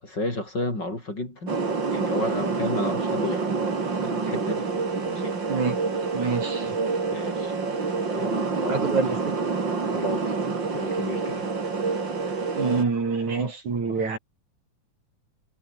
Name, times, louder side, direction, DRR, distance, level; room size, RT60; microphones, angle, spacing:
voice 1, 0.0-1.6 1.9-3.5 4.0-4.7 5.1-5.4 7.1-7.6 8.1-8.8 9.9-10.4 10.7-11.5, left 1 dB, 30° left, 8.6 m, -32 dB
sound 1, 1.5-12.8, right 4 dB, 35° right, 3.9 m, -27 dB
voice 2, 6.1-6.8 8.7-9.2 12.6-14.2, right 4 dB, 60° right, 6.2 m, -26 dB
omnidirectional pair, 3.7 m